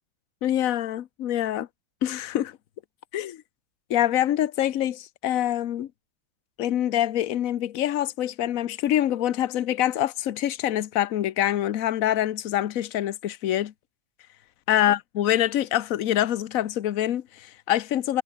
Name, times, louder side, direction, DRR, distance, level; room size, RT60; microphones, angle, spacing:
voice 1, 0.4-1.7 2.0-2.5 3.1-3.4 3.9-5.9 6.6-13.7 14.7-18.2, left 12 dB, 60° left, 1.0 m, -25 dB
omnidirectional pair, 2.2 m